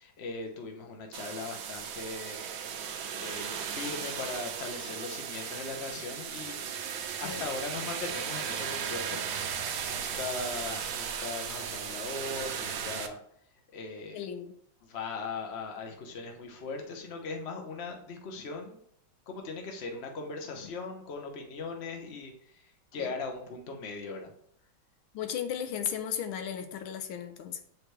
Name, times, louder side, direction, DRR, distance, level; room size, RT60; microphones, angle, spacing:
voice 1, 0.0-2.4 3.2-6.6 7.2-9.2 9.8-13.2 13.7-14.2 14.8-18.8 19.3-22.7 22.9-24.3, left 3 dB, 45° left, 3 dB, 0.9 m, -39 dB
sound 1, 1.1-13.1, right 7 dB, 85° right, 1.5 m, -36 dB
voice 2, 14.1-14.5 23.0-23.1 25.1-27.6, left 8 dB, 90° left, 8 dB, 1.5 m, -35 dB
7.7 x 4.5 x 3.3 m, 0.67 s
omnidirectional pair, 2.2 m